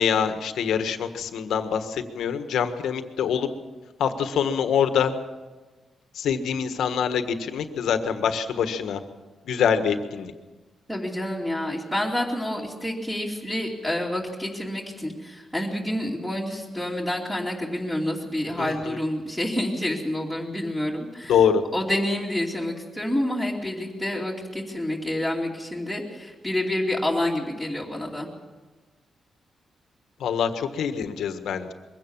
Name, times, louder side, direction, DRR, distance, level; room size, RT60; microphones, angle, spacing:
voice 1, 0.0-3.5 4.0-5.1 6.1-9.0 9.4-10.3 18.6-19.0 21.3-21.6 30.2-31.7, left 7 dB, 90° left, 9 dB, 1.5 m, -25 dB
voice 2, 10.9-21.3 21.7-28.3, left 1 dB, 5° right, -3 dB, 2.7 m, -28 dB
22.5 x 16.5 x 7.3 m, 1.2 s
wide cardioid pair, 145°, 0 cm